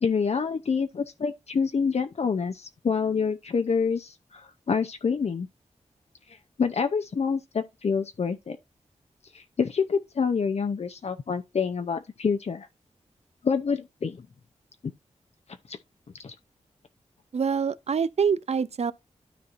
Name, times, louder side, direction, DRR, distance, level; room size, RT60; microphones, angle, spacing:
voice 1, 0.0-5.5 6.3-8.6 9.3-12.7 13.4-14.3 15.7-15.8 16.2-16.3, left 5 dB, 60° left, 0.6 m, -27 dB
voice 2, 17.3-18.9, right 6 dB, 60° right, 0.5 m, -25 dB
12.5 x 4.3 x 2.5 m
cardioid pair, 65°, 12 cm